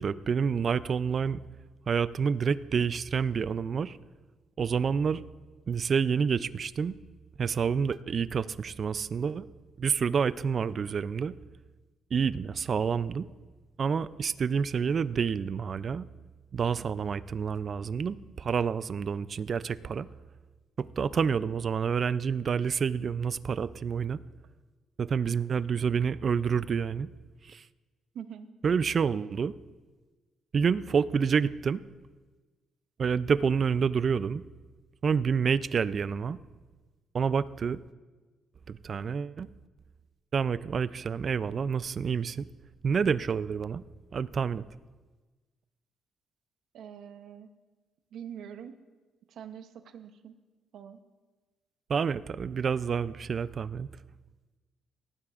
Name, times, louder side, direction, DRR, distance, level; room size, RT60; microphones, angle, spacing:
voice 1, 0.0-1.4 1.9-4.0 4.6-5.2 5.7-6.9 7.4-9.5 9.8-11.3 12.1-13.3 13.8-16.1 16.5-20.1 20.8-24.2 25.0-27.1 27.5-27.6 28.6-29.5 30.5-31.8 33.0-34.4 35.0-36.4 37.1-37.8 38.7-39.5 40.3-42.5 42.8-43.8 44.1-44.6 51.9-53.9, right 6 dB, 45° right, 17 dB, 0.4 m, -28 dB
voice 2, 28.1-28.5 46.7-47.5 48.1-48.8 49.3-50.4 50.7-51.0, right 8 dB, 75° right, 10 dB, 0.8 m, -44 dB
18.5 x 12.5 x 2.5 m, 1.3 s
cardioid pair, 90°, 0 cm